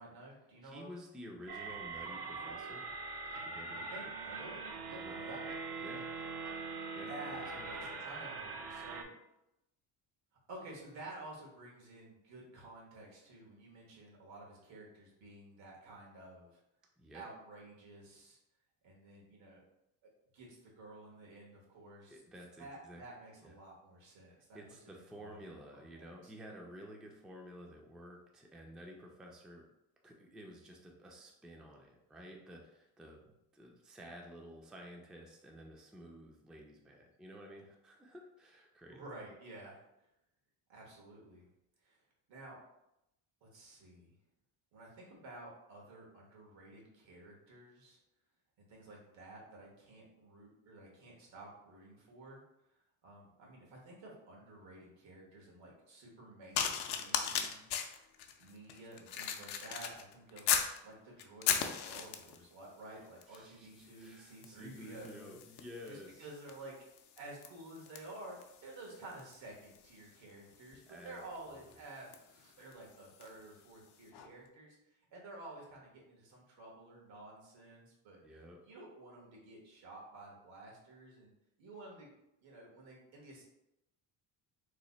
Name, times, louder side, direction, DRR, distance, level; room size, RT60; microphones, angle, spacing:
voice 1, 0.0-0.9 3.7-4.6 4.9-5.5 7.1-9.1 10.5-16.6 17.1-18.4 18.8-19.6 20.0-22.2 22.6-24.6 24.9-25.4 25.7-26.3 38.9-39.8 40.7-41.5 41.8-42.0 42.3-42.6 43.4-44.1 44.7-48.0 48.6-52.4 52.7-57.7 58.4-60.5 60.8-65.4 65.8-66.7 67.2-78.2 78.6-81.3 81.6-82.1 82.4-83.5, right 2 dB, 80° right, -2 dB, 1.3 m, -52 dB
voice 2, 0.6-2.9 3.4-3.9 5.0-5.2 5.8-6.1 6.9-7.7 17.0-17.2 22.1-23.0 23.4-23.5 24.5-29.7 30.0-39.0 62.9-66.3 70.9-71.2 71.5-71.6 78.2-78.6, equal, ahead, 0 dB, 0.3 m, -52 dB
sound 1, 1.5-9.0, right 4 dB, 60° right, 0.6 m, -42 dB
sound 2, 56.5-60.8 61.2-62.4 63.2-63.5 63.7-73.4 74.1-74.3, left 8 dB, 65° left, 0.5 m, -39 dB
3.1 x 2.1 x 3.9 m, 0.86 s
cardioid pair, 105°, 44 cm